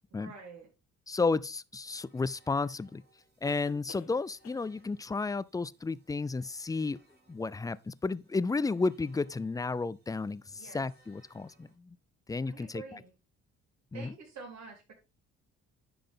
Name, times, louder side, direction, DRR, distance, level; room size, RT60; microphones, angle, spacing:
voice 1, 0.1-0.7 10.6-10.8 12.5-13.1 13.9-14.9, right 5 dB, 65° right, 4.3 m, -47 dB
voice 2, 1.1-3.0 3.4-7.0 7.3-12.0 12.3-13.0 13.9-14.1, left 3 dB, 10° left, 0.4 m, -32 dB
sound 1, 1.4-1.5 3.4-4.2 4.4-4.8 6.7-6.8 7.1-7.2, left 8 dB, 65° left, 1.2 m, -52 dB
sound 2, 1.8-11.8, right 1 dB, 35° right, 3.4 m, -67 dB
10.5 x 6.0 x 3.7 m
cardioid pair, 90°, 30 cm